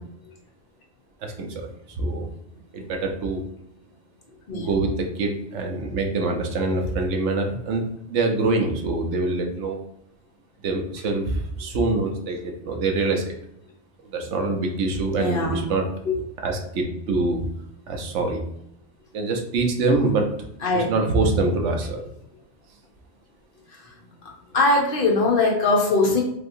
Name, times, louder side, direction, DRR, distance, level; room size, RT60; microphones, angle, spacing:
voice 1, 1.2-1.7 2.0-2.3 2.7-3.4 4.5-9.8 10.6-13.3 14.1-15.9 16.4-17.4 17.9-18.4 19.1-20.3 20.7-22.0, right 3 dB, 80° right, 3 dB, 1.0 m, -25 dB
voice 2, 15.2-15.6 20.6-20.9 24.5-26.2, left 3 dB, 55° left, -1 dB, 0.8 m, -20 dB
3.4 x 2.6 x 2.5 m, 0.77 s
omnidirectional pair, 1.2 m